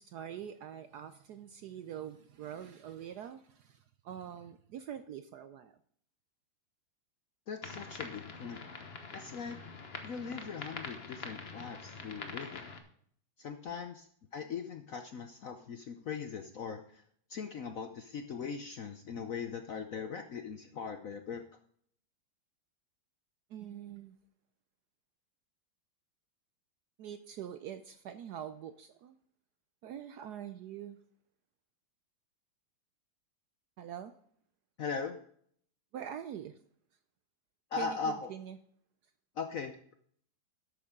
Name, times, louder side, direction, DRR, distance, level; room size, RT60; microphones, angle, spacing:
voice 1, 0.0-5.8 23.5-24.2 27.0-29.1 29.8-31.0 33.8-34.1 35.9-36.6 37.8-38.6, right 9 dB, 70° right, 11 dB, 0.9 m, -44 dB
voice 2, 7.5-8.6 9.1-9.6 10.0-12.7 13.4-17.0 17.3-21.4 34.8-35.2 37.7-38.3 39.4-39.8, left 5 dB, 65° left, 7 dB, 0.8 m, -40 dB
sound 1, 7.6-12.8, left 4 dB, 40° left, 1.1 m, -45 dB
12.0 x 8.6 x 3.7 m, 0.62 s
omnidirectional pair, 2.2 m